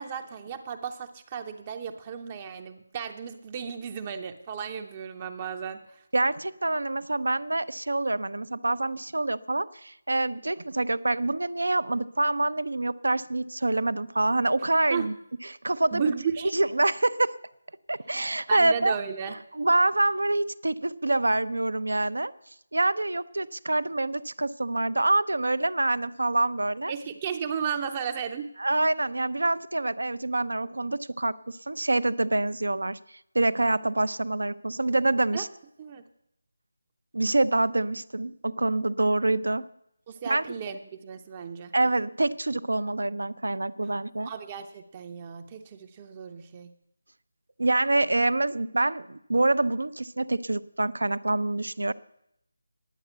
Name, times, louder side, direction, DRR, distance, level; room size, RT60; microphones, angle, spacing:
voice 1, 0.0-6.0 14.9-15.1 15.9-16.5 18.5-19.4 26.9-28.5 35.3-35.5 35.8-36.0 40.1-41.7 44.2-46.7, right 7 dB, 25° right, 6 dB, 0.6 m, -34 dB
voice 2, 6.1-15.1 15.4-16.1 16.5-17.3 17.9-19.0 19.5-22.3 22.7-26.9 28.6-33.0 33.3-35.5 37.1-39.6 40.3-40.4 41.7-44.3 47.6-51.9, right 2 dB, 75° right, 16 dB, 0.5 m, -26 dB
10.0 x 7.9 x 8.0 m, 0.77 s
figure-of-eight pair, 160°, 0 cm